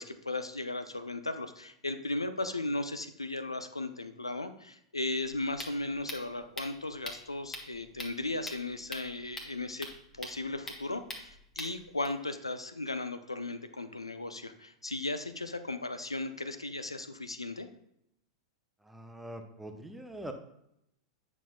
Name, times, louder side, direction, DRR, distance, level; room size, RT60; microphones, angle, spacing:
voice 1, 0.0-9.9 10.1-17.7, left 2 dB, 90° left, 10 dB, 0.5 m, -36 dB
sound 1, 5.2-12.1, left 1 dB, 15° left, 1.3 m, -44 dB
voice 2, 18.8-20.3, right 1 dB, 5° right, 4 dB, 0.7 m, -43 dB
9.0 x 6.0 x 2.2 m, 0.77 s
figure-of-eight pair, 95°, 3 cm